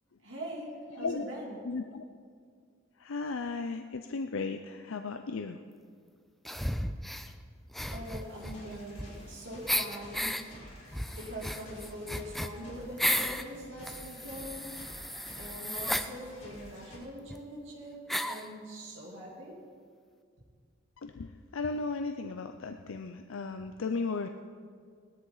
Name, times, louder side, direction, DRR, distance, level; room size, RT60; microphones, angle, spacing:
voice 1, 0.2-1.6 7.9-10.5 11.1-15.0 15.4-19.6, equal, 70° right, -3 dB, 2.9 m, -43 dB
voice 2, 0.9-1.3 1.6-2.0 3.0-5.6 21.0-24.3, left 4 dB, 85° left, 7 dB, 0.5 m, -35 dB
sound 1, 6.5-7.3 7.7-9.3 9.7-10.4 10.9-13.4 13.8-16.1 17.0-17.1 17.3-17.4 18.1-18.5, equal, ahead, 0.4 m, -34 dB
sound 2, 7.7-17.0, equal, 40° left, 4.3 m, -50 dB
19.0 x 13.0 x 4.0 m, 2.1 s
head